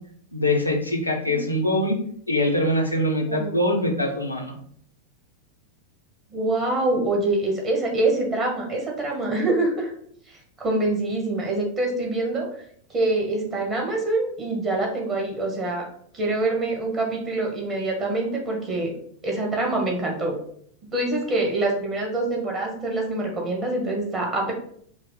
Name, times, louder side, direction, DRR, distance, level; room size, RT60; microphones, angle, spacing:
voice 1, 0.3-2.0 2.3-4.5, left 1 dB, 90° left, 0 dB, 0.7 m, -23 dB
voice 2, 6.3-9.9 10.3-12.5 12.9-15.9 16.1-18.9 19.2-20.4 20.9-24.5, right 2 dB, 25° right, 0 dB, 1.3 m, -25 dB
4.7 x 2.1 x 4.0 m, 0.63 s
figure-of-eight pair, 90°, 0 cm